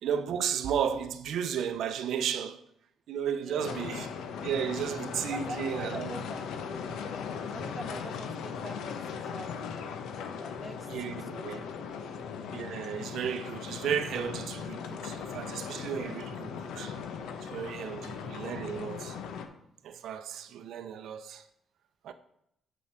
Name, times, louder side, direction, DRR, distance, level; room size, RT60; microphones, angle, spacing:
voice 1, 0.0-2.6 3.1-4.1 4.4-6.1 10.9-11.6 12.5-17.0 17.4-19.2 19.8-21.4 22.0-22.1, right 8 dB, 75° right, 0.6 m, -34 dB
voice 2, 3.4-3.8 5.3-7.0 7.5-9.9 10.4-11.5 11.9-12.1 17.8-18.2, right 1 dB, 15° right, 0.7 m, -45 dB
sound 1, 3.6-19.5, left 6 dB, 85° left, 0.9 m, -38 dB
7.4 x 6.2 x 5.6 m
cardioid pair, 90°, 0 cm